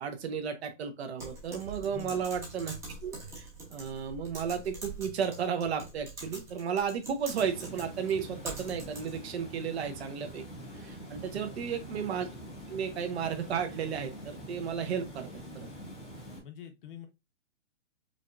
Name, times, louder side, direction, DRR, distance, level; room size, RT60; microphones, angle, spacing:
voice 1, 0.0-2.7 3.0-10.4 10.7-12.3 12.7-15.3 15.5-15.7, right 7 dB, 60° right, 0.9 m, -33 dB
Typing, 1.2-9.3, right 2 dB, 10° right, 0.8 m, -44 dB
voice 2, 1.8-2.3 11.3-11.9 16.4-17.1, left 7 dB, 45° left, 0.9 m, -47 dB
Water, 7.3-16.4, equal, 10° left, 0.3 m, -45 dB
5.0 x 2.6 x 2.4 m
hypercardioid pair, 165°, 36 cm